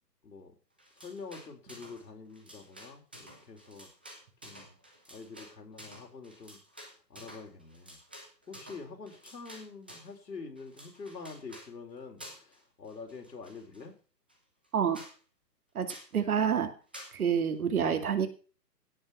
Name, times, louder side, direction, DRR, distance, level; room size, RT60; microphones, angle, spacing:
voice 1, 0.2-0.5 1.0-3.9 4.4-4.8 5.1-6.6 7.1-8.0 8.5-13.9, left 4 dB, 80° left, 4.7 m, -46 dB
sound 1, 0.8-2.0 2.3-10.2 10.6-11.7 12.2-12.6 12.9-13.8 14.3-14.4 14.6-14.7 14.9-15.2 15.9-16.1 16.9-17.2, equal, 5° right, 0.5 m, -50 dB
voice 2, 16.1-16.7 17.1-18.3, right 7 dB, 60° right, 2.6 m, -27 dB
16.5 x 6.0 x 5.8 m
hypercardioid pair, 140°, 49 cm